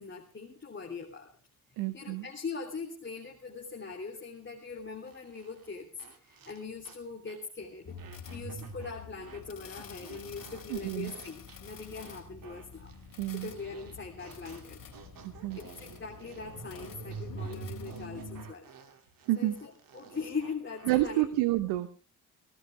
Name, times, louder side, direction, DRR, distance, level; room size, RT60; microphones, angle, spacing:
voice 1, 0.0-1.4 1.7-8.0 8.3-12.9 13.3-15.0 15.5-18.7 19.4-21.3, left 4 dB, 25° left, 0 dB, 3.4 m, -41 dB
voice 2, 1.8-2.3 10.7-11.1 13.2-13.5 15.2-15.6 19.3-19.6 20.9-21.9, right 16 dB, 65° right, 12 dB, 1.1 m, -29 dB
sound 1, 5.1-7.0 7.3-7.5 8.0-9.4 9.7-21.3, right 7 dB, 50° right, 2.7 m, -53 dB
sound 2, 7.9-18.4, equal, 50° left, 4.7 m, -45 dB
18.0 x 17.5 x 3.4 m, 0.34 s
figure-of-eight pair, 40°, 43 cm